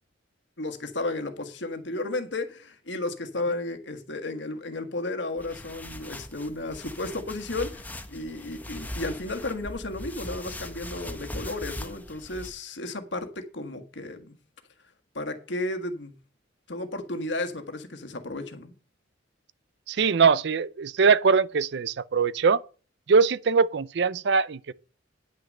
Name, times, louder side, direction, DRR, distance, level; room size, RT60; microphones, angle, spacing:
voice 1, 0.6-14.4 15.1-16.1 16.7-18.7, left 2 dB, 65° left, 1.5 m, -33 dB
sound 1, 5.4-12.5, left 1 dB, 10° left, 1.0 m, -40 dB
voice 2, 19.9-22.6 23.1-24.7, right 5 dB, 65° right, 0.5 m, -22 dB
10.0 x 6.2 x 6.6 m
head